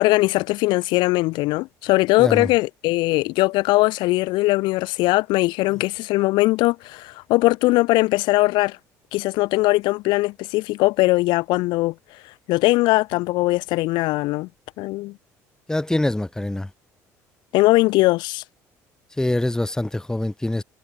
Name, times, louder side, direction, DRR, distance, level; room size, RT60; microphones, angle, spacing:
voice 1, 0.0-8.8 9.1-11.9 12.5-14.5 14.8-15.1 17.5-18.4, left 21 dB, 70° left, 1.0 m, -20 dB
voice 2, 2.2-2.5 15.7-16.7 19.2-20.6, left 1 dB, 10° left, 1.1 m, -24 dB
hypercardioid pair, 70°, 8 cm